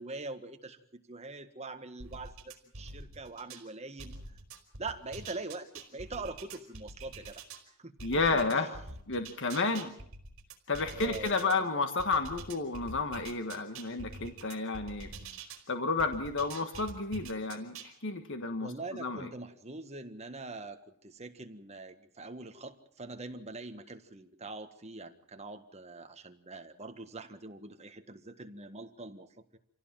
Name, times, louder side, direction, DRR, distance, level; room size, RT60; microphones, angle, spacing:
voice 1, 0.0-4.1 4.8-7.4 7.8-8.0 8.5-8.7 10.9-11.7 18.6-29.6, right 3 dB, 30° right, 7 dB, 1.7 m, -43 dB
sound 1, 2.0-3.6 4.0-7.6 8.0-11.5 12.0-15.6 16.0-17.9, right 3 dB, 65° right, 4.4 m, -46 dB
voice 2, 8.0-8.7 9.1-9.9 10.7-15.1 15.7-19.3, left 3 dB, 60° left, 7 dB, 1.6 m, -31 dB
27.0 x 17.0 x 7.5 m, 0.66 s
head